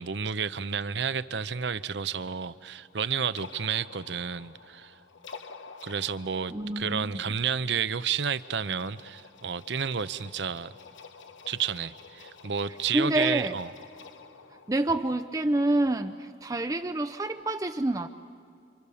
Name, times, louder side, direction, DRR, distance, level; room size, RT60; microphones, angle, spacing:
voice 1, 0.0-4.9 5.8-10.7 11.5-13.7, right 7 dB, 70° right, 15 dB, 0.7 m, -31 dB
sound 1, 2.1-16.5, left 5 dB, 90° left, 1.2 m, -50 dB
voice 2, 6.5-7.2 12.7-13.6 14.7-18.1, right 1 dB, 20° right, 8 dB, 0.5 m, -28 dB
29.0 x 26.0 x 7.0 m, 2.4 s
head